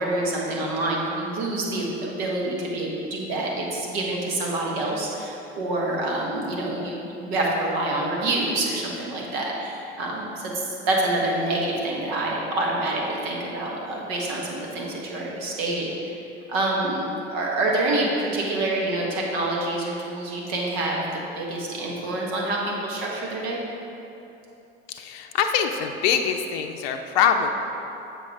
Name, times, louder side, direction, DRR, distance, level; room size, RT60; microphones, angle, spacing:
voice 1, 0.0-16.1 16.5-23.6, right 2 dB, 65° right, -3 dB, 1.5 m, -27 dB
voice 2, 24.9-27.5, left 7 dB, 65° left, 5 dB, 0.6 m, -23 dB
7.6 x 6.0 x 3.6 m, 2.9 s
hypercardioid pair, 70°, 33 cm